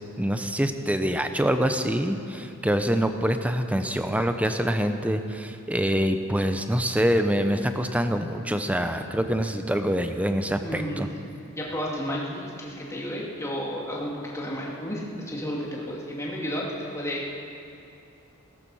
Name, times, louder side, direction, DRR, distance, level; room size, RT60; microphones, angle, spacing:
voice 1, 0.2-11.1, equal, 5° right, 7 dB, 0.7 m, -25 dB
voice 2, 10.6-11.0 11.5-17.2, equal, 15° left, -4 dB, 2.3 m, -32 dB
17.0 x 13.5 x 5.6 m, 2.7 s
head